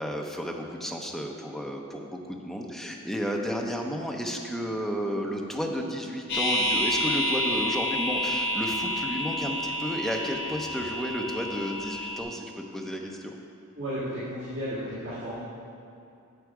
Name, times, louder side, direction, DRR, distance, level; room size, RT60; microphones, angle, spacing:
voice 1, 0.0-13.4, equal, ahead, 0 dB, 0.7 m, -32 dB
sound 1, 6.3-12.2, equal, 50° left, 1.5 m, -29 dB
voice 2, 13.8-15.4, equal, 65° right, -11 dB, 1.8 m, -33 dB
8.0 x 7.3 x 4.9 m, 2.6 s
head